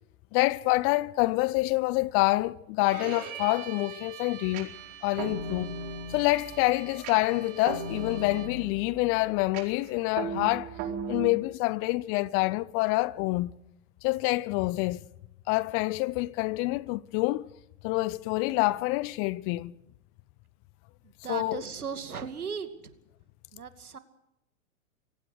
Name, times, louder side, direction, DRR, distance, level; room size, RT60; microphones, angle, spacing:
voice 1, 0.3-4.7 5.0-5.7 6.1-10.7 11.1-13.5 14.0-15.0 15.5-17.5 17.8-19.7 21.3-21.6, left 21 dB, 30° left, 0.7 m, -27 dB
Bowed string instrument, 2.9-8.7, right 10 dB, 60° right, 7.2 m, -45 dB
sound 1, 4.5-11.3, right 4 dB, 40° right, 4.5 m, -38 dB
voice 2, 21.2-22.7 23.5-24.0, right 6 dB, 85° right, 2.5 m, -36 dB
25.0 x 17.5 x 6.5 m
hypercardioid pair, 110°, 43 cm